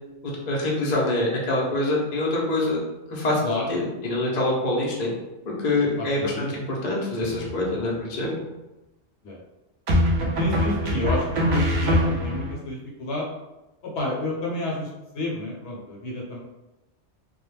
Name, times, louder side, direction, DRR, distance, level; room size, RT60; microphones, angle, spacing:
voice 1, 0.2-2.8 3.1-3.4 3.7-5.1 5.6-8.4, left 2 dB, 50° left, -3 dB, 0.5 m, -25 dB
voice 2, 6.0-6.6 9.2-9.4 10.4-13.3 13.8-16.4, left 2 dB, 65° left, -2 dB, 0.9 m, -30 dB
sound 1, 7.2-7.8 9.9-12.5, equal, 70° right, 0.4 m, -23 dB
2.3 x 2.0 x 3.1 m, 0.99 s
omnidirectional pair, 1.3 m